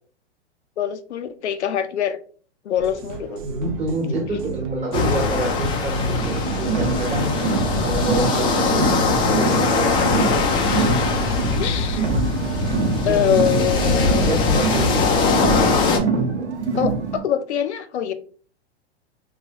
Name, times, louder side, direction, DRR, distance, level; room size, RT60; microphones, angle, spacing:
voice 1, 0.8-2.2 2.6-3.4 7.7-7.8 11.6-12.2 13.0-14.3 16.8-18.1, left 9 dB, 80° left, 9 dB, 0.5 m, -24 dB
sound 1, 2.8-15.6, right 8 dB, 50° right, 0.6 m, -35 dB
voice 2, 3.1-7.3 7.8-10.1 13.0-16.5, right 1 dB, 20° right, 0 dB, 1.0 m, -28 dB
sound 2, 4.9-16.0, left 4 dB, 15° left, 0.3 m, -21 dB
Car, 6.1-17.2, right 4 dB, 80° right, 0.9 m, -25 dB
3.1 x 2.2 x 2.7 m, 0.43 s
hypercardioid pair, 110°, 34 cm